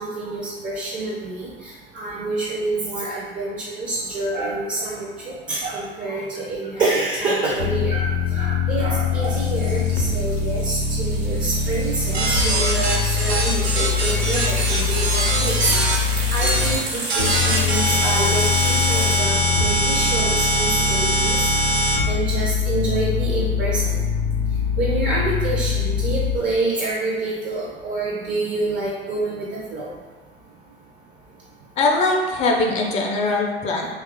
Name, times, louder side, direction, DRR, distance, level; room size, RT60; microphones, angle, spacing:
voice 1, 0.0-16.0 16.3-21.4 22.1-24.0 24.8-29.5 29.7-29.9, right 2 dB, 25° right, -5 dB, 0.5 m, -27 dB
sound 1, 7.6-16.8 17.2-26.4, left 5 dB, 75° left, 0.5 m, -23 dB
sound 2, 9.2-19.2, right 2 dB, 60° right, 1.0 m, -32 dB
sound 3, 12.1-16.0 16.4-16.8 17.1-22.0, right 1 dB, 90° right, 0.5 m, -23 dB
voice 2, 31.8-33.9, left 2 dB, 25° left, 0 dB, 0.4 m, -21 dB
2.9 x 2.3 x 3.4 m, 1.4 s
figure-of-eight pair, 65°, 31 cm